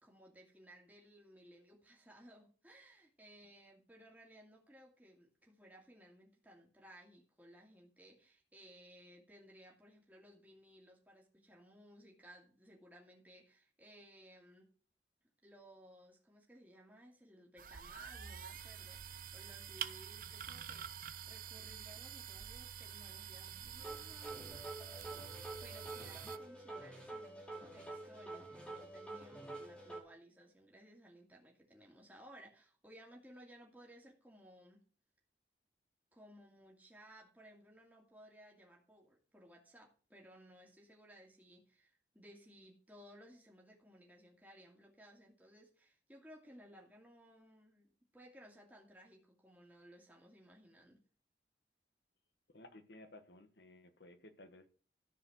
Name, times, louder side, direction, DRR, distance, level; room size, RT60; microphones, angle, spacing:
voice 1, 0.0-14.7 15.4-24.7 25.6-34.8 36.1-51.0, equal, 10° right, 2.4 m, -60 dB
sound 1, 17.6-26.4, right 8 dB, 50° right, 0.6 m, -47 dB
sound 2, 23.8-30.0, right 2 dB, 5° left, 2.4 m, -48 dB
voice 2, 52.5-54.7, left 1 dB, 75° left, 1.3 m, -57 dB
14.0 x 4.9 x 6.2 m
head